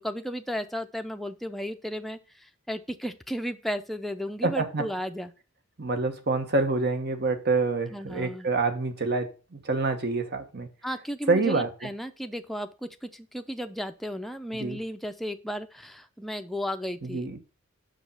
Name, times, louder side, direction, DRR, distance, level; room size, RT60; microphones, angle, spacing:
voice 1, 0.0-5.3 7.9-8.5 10.8-17.4, equal, ahead, 0.6 m, -34 dB
voice 2, 4.4-4.8 5.8-10.7 11.3-11.7 14.6-14.8 17.0-17.4, right 3 dB, 55° right, 1.2 m, -27 dB
6.5 x 5.1 x 5.6 m
head